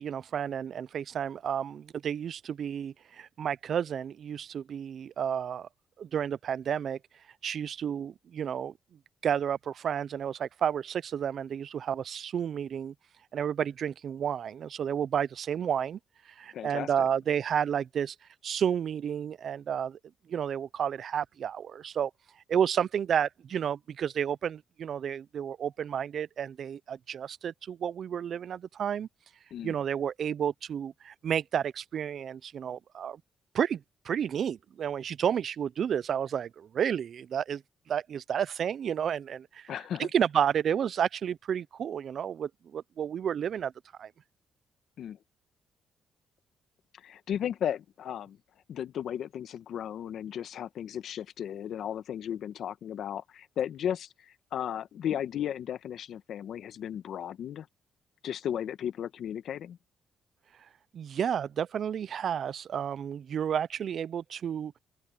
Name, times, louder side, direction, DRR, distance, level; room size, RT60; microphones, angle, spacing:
voice 1, 0.0-5.7 6.0-7.0 7.4-8.7 9.2-12.9 13.3-16.0 16.4-18.2 18.4-20.0 20.3-22.1 22.5-29.1 29.6-33.2 33.5-37.6 37.9-39.7 40.0-43.7 44.0-44.1 60.9-64.7, right 8 dB, 60° right, 0.4 m, -31 dB
voice 2, 16.5-16.9 29.5-29.8 39.7-40.1 45.0-45.2 46.9-48.4 48.7-57.7 58.2-59.8, left 9 dB, 70° left, 1.2 m, -35 dB
open air
cardioid pair, 90°, 0 cm